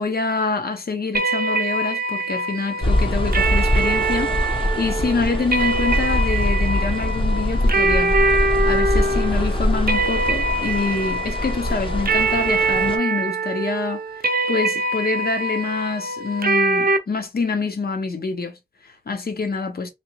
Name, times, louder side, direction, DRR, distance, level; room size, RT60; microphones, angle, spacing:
voice 1, 0.0-8.2 8.7-19.9, left 4 dB, 65° left, 0.8 m, -26 dB
sound 1, 1.1-17.0, right 2 dB, 60° right, 0.5 m, -23 dB
sound 2, 2.8-13.0, left 1 dB, 30° left, 0.6 m, -23 dB
3.3 x 2.8 x 2.8 m
wide cardioid pair, 75°, 17 cm